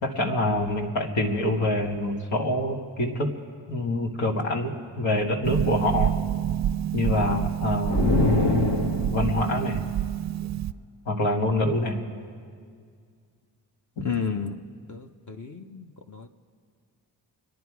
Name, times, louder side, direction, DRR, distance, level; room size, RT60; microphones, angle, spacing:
voice 1, 0.0-3.3 3.7-6.1 6.9-8.0 9.1-9.9 11.1-12.0, left 1 dB, 85° left, -1 dB, 1.9 m, -26 dB
Harp, 5.4-10.7, right 11 dB, 40° right, 0.5 m, -27 dB
sound 1, 7.8-9.4, left 2 dB, 65° left, 1.5 m, -23 dB
voice 2, 14.0-14.6 14.9-16.3, left 5 dB, 40° left, 2 dB, 1.0 m, -32 dB
26.0 x 10.5 x 4.8 m, 2.1 s
supercardioid pair, 45°, 45 cm